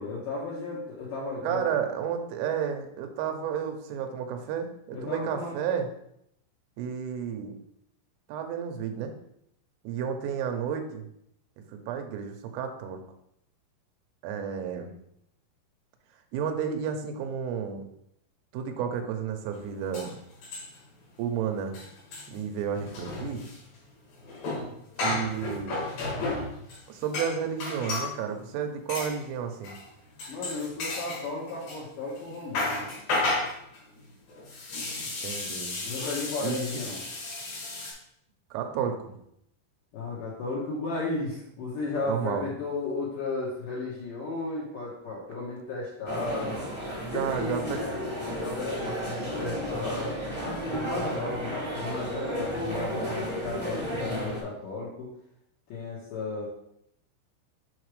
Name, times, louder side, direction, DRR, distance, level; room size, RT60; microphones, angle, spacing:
voice 1, 0.0-1.6 4.9-5.5 30.3-32.9 35.8-37.0 39.9-46.6 47.1-50.1 50.4-55.1 55.7-56.5, left 3 dB, 80° left, -7 dB, 1.9 m, -34 dB
voice 2, 1.4-5.9 6.8-7.6 8.3-9.1 9.8-11.0 11.7-13.0 14.2-14.9 16.3-17.8 18.5-20.1 21.2-21.7 22.3-23.4 25.0-25.8 26.9-29.7 35.2-35.8 36.4-36.5 38.5-39.1 42.1-42.4 47.0-47.8, right 7 dB, 80° right, 5 dB, 3.3 m, -31 dB
sound 1, 19.5-19.6 19.9-21.0 21.2-21.4 21.6-28.2 28.9-29.2 29.6-29.9 30.2-31.8 32.2-37.9, left 2 dB, 55° left, 3.1 m, -33 dB
sound 2, 46.0-54.4, equal, 35° right, 0.8 m, -33 dB
7.2 x 4.9 x 3.2 m, 0.75 s
omnidirectional pair, 5.9 m